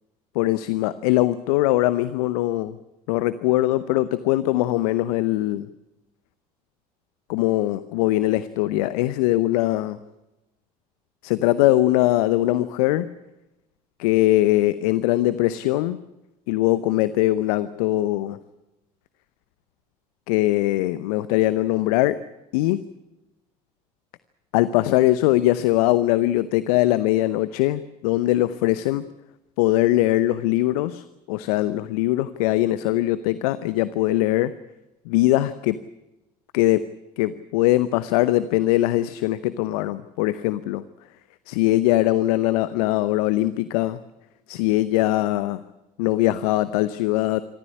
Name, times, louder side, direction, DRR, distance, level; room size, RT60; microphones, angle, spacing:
voice 1, 0.3-2.8 3.1-5.7 7.3-9.9 11.2-13.1 14.0-16.0 16.5-18.4 20.3-22.2 22.5-22.8 24.5-29.0 29.6-34.5 35.1-35.8 36.5-36.9 37.2-40.8 41.5-44.0 44.5-45.6 46.0-47.4, left 16 dB, 70° left, 15 dB, 0.8 m, -21 dB
26.0 x 14.0 x 9.8 m, 0.96 s
hypercardioid pair, 65°, 20 cm